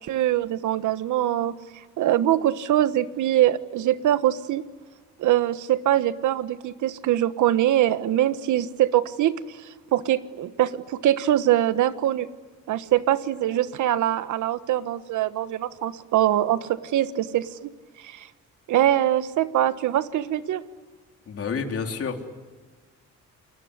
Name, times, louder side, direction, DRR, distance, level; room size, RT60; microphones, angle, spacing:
voice 1, 0.0-1.5 2.0-4.6 5.2-12.3 12.7-17.7 18.0-18.3 18.7-20.6, right 12 dB, 80° right, 13 dB, 1.4 m, -23 dB
voice 2, 21.3-22.3, left 5 dB, 50° left, 3 dB, 3.6 m, -29 dB
29.0 x 20.5 x 9.9 m, 1.4 s
cardioid pair, 90°, 30 cm